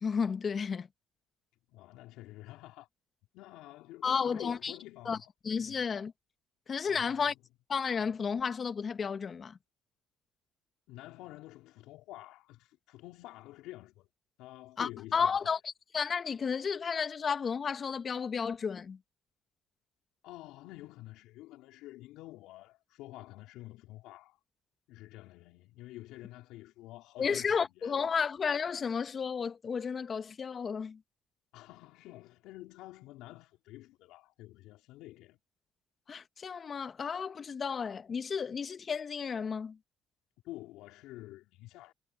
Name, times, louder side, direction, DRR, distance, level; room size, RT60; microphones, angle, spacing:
voice 1, 0.0-0.9 4.0-4.7 5.0-5.2 5.4-6.1 6.7-7.3 7.7-9.6 14.8-19.0 27.2-31.0 36.1-39.8, left 6 dB, 40° left, 1.4 m, -32 dB
voice 2, 1.7-2.9 3.3-5.2 5.6-5.8 6.9-7.4 10.9-14.1 14.4-15.6 20.2-24.4 24.9-28.0 31.5-35.4 40.4-41.9, left 17 dB, 80° left, 4.2 m, -49 dB
supercardioid pair, 70°, 0 cm